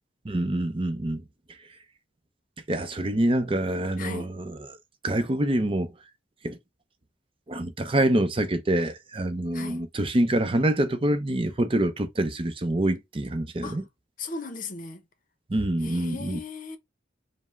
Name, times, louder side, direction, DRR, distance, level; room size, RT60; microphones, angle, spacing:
voice 1, 0.2-1.2 2.7-4.6 5.0-5.9 6.4-6.6 7.5-13.8 15.5-16.4, right 1 dB, 30° right, 0.6 m, -26 dB
voice 2, 4.0-4.4 9.5-9.8 13.6-13.8 14.2-15.0 15.8-16.8, left 4 dB, 50° left, 0.7 m, -37 dB
5.3 x 2.1 x 3.5 m
head